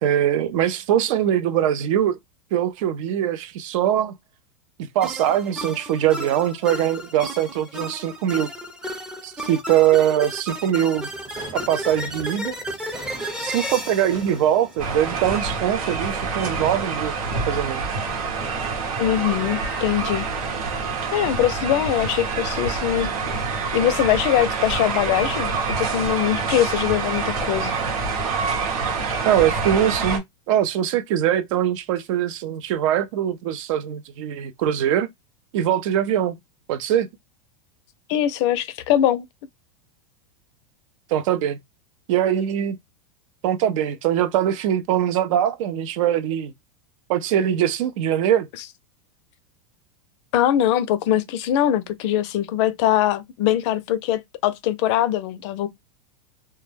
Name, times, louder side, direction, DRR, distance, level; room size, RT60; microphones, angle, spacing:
voice 1, 0.0-2.2 2.5-4.1 4.9-8.5 9.2-11.1 11.5-12.5 13.4-17.1 17.5-17.8 29.2-35.1 35.5-36.4 36.7-37.1 41.1-41.6 42.1-42.8 43.4-46.5 47.1-48.5, right 10 dB, 65° right, 0.5 m, -22 dB
sound 1, 5.0-15.4, equal, 5° right, 0.5 m, -33 dB
sound 2, 11.0-20.8, right 3 dB, 20° right, 0.9 m, -43 dB
sound 3, 14.8-30.2, right 4 dB, 85° right, 1.0 m, -26 dB
voice 2, 19.0-20.3 21.1-23.1 23.7-27.7 38.1-39.3 50.3-55.7, left 11 dB, 55° left, 0.5 m, -22 dB
2.2 x 2.1 x 3.2 m
supercardioid pair, 135°, 18 cm